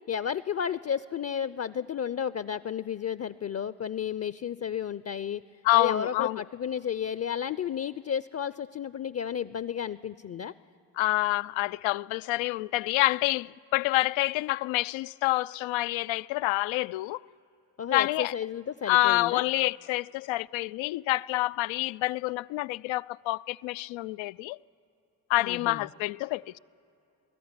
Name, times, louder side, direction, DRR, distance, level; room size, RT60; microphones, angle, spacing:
voice 1, 0.1-5.4 5.7-10.5 17.8-19.4 25.4-25.9, left 8 dB, 30° left, 0.7 m, -32 dB
voice 2, 5.6-6.4 11.0-17.2 17.9-18.3 18.9-24.6 25.3-26.6, left 19 dB, 65° left, 0.6 m, -27 dB
21.0 x 14.0 x 9.8 m
hypercardioid pair, 45°, 49 cm